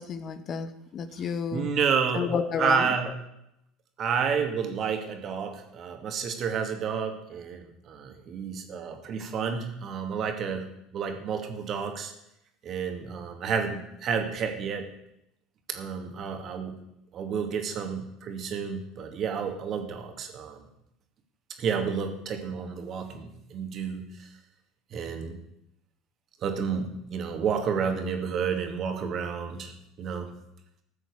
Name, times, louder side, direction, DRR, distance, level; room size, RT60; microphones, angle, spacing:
voice 1, 0.0-1.7 2.1-2.9, left 6 dB, 45° left, 11 dB, 1.1 m, -31 dB
voice 2, 1.5-2.3 2.6-3.1 4.0-12.1 12.6-14.9 15.7-16.8 17.1-20.6 21.6-24.0 24.9-25.4 26.4-29.7 30.0-30.3, right 6 dB, 45° right, 5 dB, 2.4 m, -30 dB
14.5 x 6.3 x 8.3 m, 0.81 s
hypercardioid pair, 80°, 0 cm